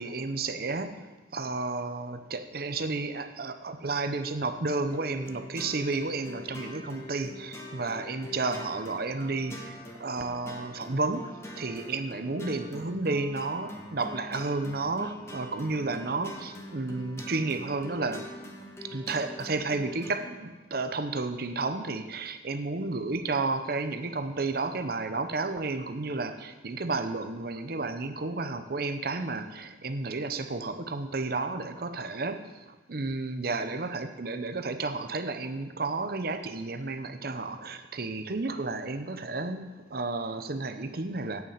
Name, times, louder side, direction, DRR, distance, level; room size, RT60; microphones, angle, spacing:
voice 1, 0.0-18.5 18.8-41.4, right 3 dB, 55° right, 9 dB, 0.8 m, -32 dB
sound 1, 4.9-20.3, left 1 dB, 15° left, 1.4 m, -44 dB
8.3 x 7.3 x 8.6 m, 1.2 s
head